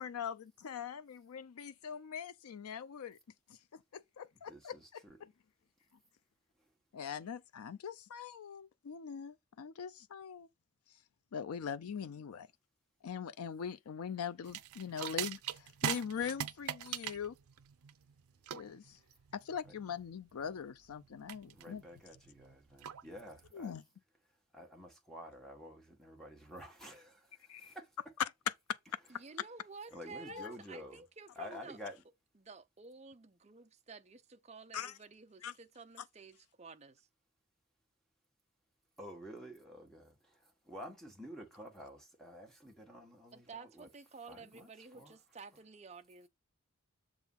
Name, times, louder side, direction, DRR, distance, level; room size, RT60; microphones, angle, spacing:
voice 1, 0.0-3.2 3.5-4.8 5.2-5.3 6.9-10.5 11.3-12.5 13.0-17.4 18.5-19.0 19.3-21.8 23.5-23.8 27.5-27.7 28.7-28.8 30.3-30.6 34.7-35.0 35.4-35.5, left 7 dB, 85° left, 0.4 m, -42 dB
voice 2, 4.5-5.2 21.5-23.8 24.5-28.0 29.9-31.0 31.4-32.0 39.0-43.9 44.3-45.2 45.5-45.6, equal, ahead, 1.7 m, -50 dB
sound 1, 14.5-23.5, right 10 dB, 85° right, 0.5 m, -42 dB
voice 3, 29.1-31.8 32.4-37.1 43.3-46.3, right 4 dB, 30° right, 0.6 m, -52 dB
7.0 x 3.7 x 5.7 m
head